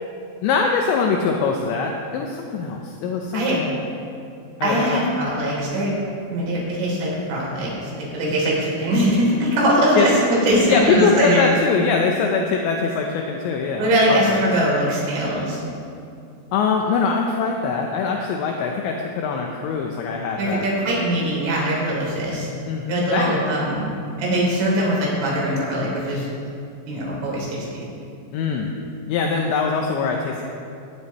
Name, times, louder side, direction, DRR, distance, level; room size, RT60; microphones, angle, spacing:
voice 1, 0.4-3.8 4.6-5.0 10.0-10.1 10.7-14.4 16.5-20.7 22.7-23.4 28.3-28.7 29.1-30.4, left 5 dB, 80° left, 1 dB, 2.6 m, -22 dB
voice 2, 4.6-5.9 6.3-11.6 13.8-15.6 20.4-22.5 22.9-26.3 26.9-27.9, right 1 dB, 70° right, -5 dB, 5.7 m, -21 dB
17.5 x 10.0 x 4.2 m, 2.6 s
omnidirectional pair, 6.0 m